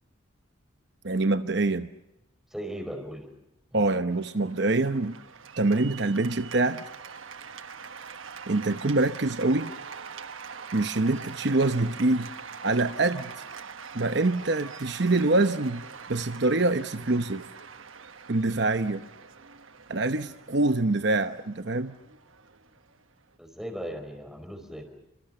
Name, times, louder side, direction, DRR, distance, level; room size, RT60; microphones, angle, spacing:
voice 1, 1.0-1.9 3.7-5.2 5.6-6.9 8.5-9.7 10.7-12.3 12.6-13.3 13.9-15.8 16.1-17.4 18.3-19.0 19.9-21.9, right 2 dB, 55° right, 9 dB, 0.9 m, -25 dB
voice 2, 2.5-3.3 3.7-3.9 23.4-24.9, equal, ahead, 5 dB, 4.8 m, -37 dB
Cheering / Applause, 4.1-23.4, right 6 dB, 75° right, 1.3 m, -44 dB
28.5 x 26.0 x 6.8 m, 0.90 s
head